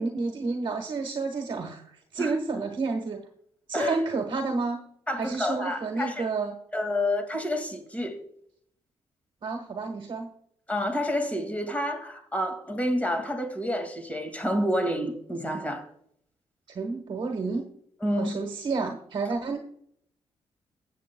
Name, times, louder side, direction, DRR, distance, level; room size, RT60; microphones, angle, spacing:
voice 1, 0.0-3.2 3.7-4.8 5.2-6.5 9.4-10.3 16.7-17.6 18.2-19.6, right 4 dB, 50° right, 1.2 m, -30 dB
voice 2, 5.1-6.3 6.7-8.2 10.7-15.9 18.0-18.4, left 1 dB, 15° left, 2.0 m, -29 dB
16.5 x 7.5 x 2.2 m
cardioid pair, 80°, 11 cm